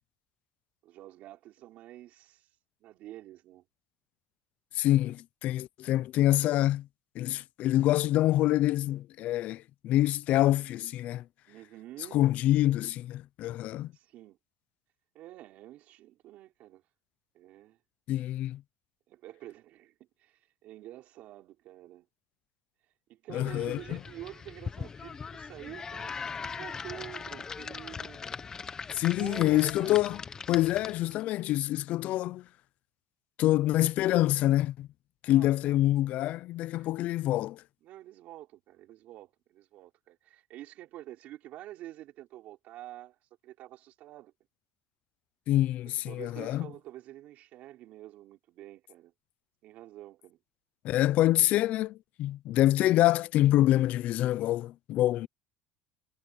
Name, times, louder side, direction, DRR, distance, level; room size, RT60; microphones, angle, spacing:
voice 1, 0.8-2.5 2.8-3.7 11.5-12.3 13.9-14.4 15.1-16.8 17.3-17.8 19.1-22.1 23.1-26.1 26.5-28.2 29.0-30.2 35.2-35.7 36.8-36.9 37.8-43.2 43.4-44.3 45.8-49.1 49.6-50.4, right 14 dB, 45° right, 4.6 m, -48 dB
voice 2, 4.7-6.9 7.2-11.2 12.1-13.9 18.1-18.6 23.3-23.8 28.9-30.2 30.5-32.4 33.4-34.9 35.2-37.6 45.5-46.7 50.8-55.3, left 14 dB, 45° left, 0.5 m, -26 dB
sound 1, 23.5-31.2, left 5 dB, 20° left, 0.8 m, -40 dB
cardioid pair, 165°, 3 cm